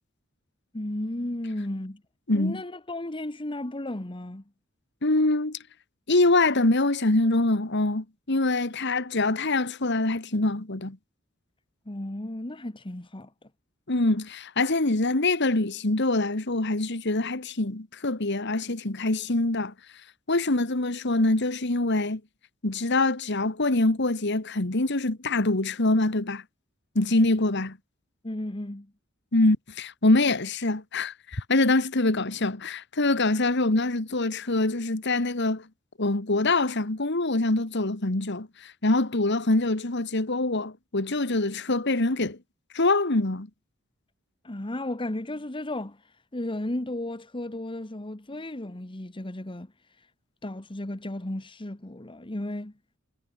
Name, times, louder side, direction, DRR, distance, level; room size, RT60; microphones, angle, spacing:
voice 1, 0.7-2.0 2.3-4.4 11.9-13.3 28.2-28.9 44.4-46.0 46.3-49.7 50.4-52.7, left 1 dB, 25° left, 1.3 m, -34 dB
voice 2, 2.3-2.6 5.0-5.6 6.1-11.0 13.9-19.7 20.3-22.2 22.6-26.4 27.0-27.8 29.3-35.7 36.0-42.4 42.7-43.5, left 2 dB, 60° left, 1.9 m, -24 dB
head